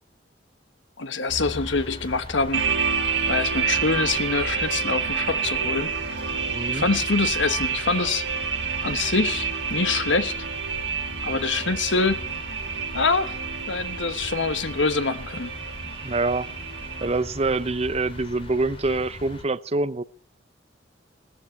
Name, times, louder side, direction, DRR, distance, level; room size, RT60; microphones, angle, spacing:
voice 1, 1.0-2.7 3.3-5.9 6.7-8.2 8.8-10.3 11.2-12.2 12.9-13.4 13.7-15.6, left 4 dB, 85° left, 1.3 m, -25 dB
sound 1, 1.3-19.4, left 1 dB, 30° left, 3.7 m, -39 dB
sound 2, 2.5-17.1, right 6 dB, 75° right, 3.0 m, -29 dB
voice 2, 6.5-6.8 16.0-16.5 17.0-20.0, right 3 dB, 35° right, 0.7 m, -25 dB
17.0 x 13.5 x 5.8 m
head